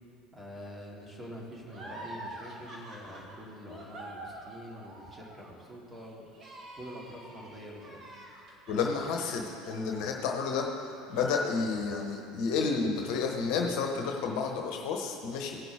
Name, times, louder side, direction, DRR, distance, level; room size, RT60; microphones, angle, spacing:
voice 1, 0.3-6.3 6.8-8.1, equal, 15° right, -3 dB, 2.6 m, -45 dB
sound 1, 1.7-10.8 11.1-12.2, right 1 dB, 35° right, 2.0 m, -47 dB
voice 2, 8.7-15.6, left 5 dB, 60° left, 2 dB, 1.0 m, -31 dB
17.0 x 6.0 x 3.6 m, 2.6 s
figure-of-eight pair, 70°, 0 cm